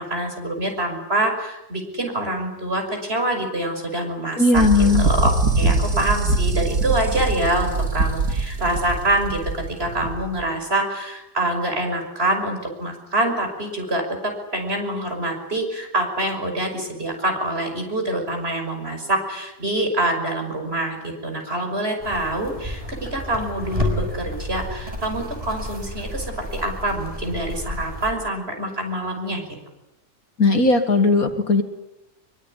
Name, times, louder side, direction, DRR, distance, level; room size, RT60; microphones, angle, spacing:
voice 1, 0.0-14.0 14.5-29.4, right 1 dB, 35° right, 4 dB, 6.1 m, -25 dB
voice 2, 4.4-5.1 30.4-31.6, left 3 dB, 55° left, 7 dB, 2.4 m, -17 dB
sound 1, 4.5-10.4, right 3 dB, 70° right, 3.1 m, -23 dB
sound 2, 22.0-28.1, left 1 dB, 20° right, 6.1 m, -31 dB
24.0 x 23.5 x 9.9 m, 0.95 s
omnidirectional pair, 1.8 m